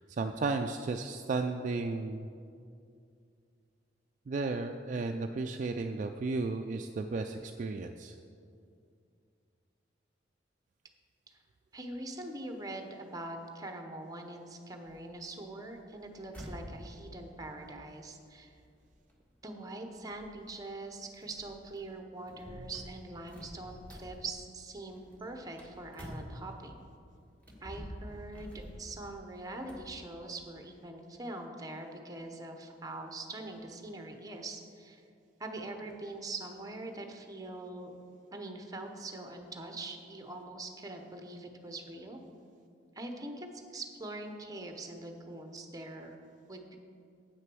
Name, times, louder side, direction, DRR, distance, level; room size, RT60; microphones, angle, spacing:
voice 1, 0.1-2.3 4.3-8.2, right 3 dB, 45° right, 5 dB, 0.3 m, -34 dB
voice 2, 11.7-18.6 19.4-26.8 27.6-35.0 35.4-38.0 38.3-42.2 42.9-46.2 46.5-46.8, right 2 dB, 20° right, 4 dB, 0.8 m, -43 dB
sound 1, 14.9-26.8 27.3-29.9, equal, 10° left, 1.6 m, -49 dB
8.3 x 6.4 x 6.1 m, 2.4 s
head